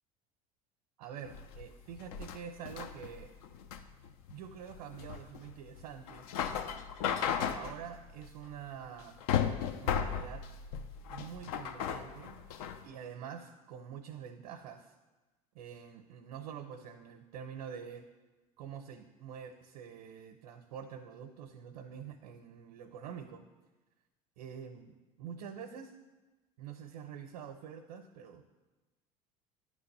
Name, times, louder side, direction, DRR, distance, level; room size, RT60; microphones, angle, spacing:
voice 1, 1.0-3.3 4.3-6.3 7.4-9.2 9.8-10.4 11.1-12.5 12.8-14.9 15.5-18.0 18.6-23.4 24.4-24.9 25.2-25.9 26.6-28.4, right 8 dB, 75° right, 6 dB, 0.6 m, -46 dB
sound 1, 1.3-12.8, left 8 dB, 70° left, 0.6 m, -36 dB
9.3 x 3.3 x 6.5 m, 1.2 s
hypercardioid pair, 75°, 19 cm